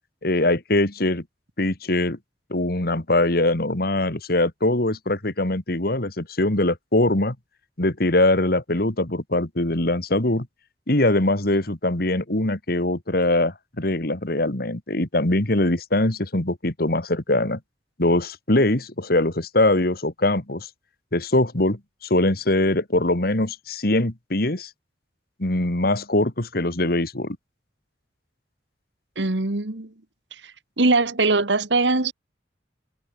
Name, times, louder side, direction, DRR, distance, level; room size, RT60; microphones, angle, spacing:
voice 1, 0.2-1.2 1.6-2.2 2.5-7.4 7.8-10.5 10.9-17.6 18.0-20.7 21.1-24.7 25.4-27.4, left 1 dB, 60° left, 2.5 m, -22 dB
voice 2, 29.1-29.9 30.4-30.5 30.8-32.1, right 3 dB, 90° right, 1.8 m, -21 dB
head